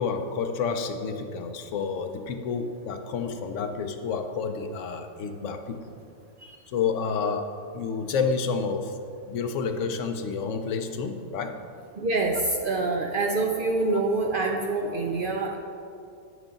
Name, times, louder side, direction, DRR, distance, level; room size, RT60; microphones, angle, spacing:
voice 1, 0.0-5.9 6.7-9.0 9.3-11.6, left 5 dB, 70° left, 6 dB, 0.9 m, -29 dB
voice 2, 12.0-15.6, right 3 dB, 55° right, 1 dB, 0.6 m, -26 dB
9.4 x 6.3 x 3.8 m, 2.5 s
omnidirectional pair, 1.4 m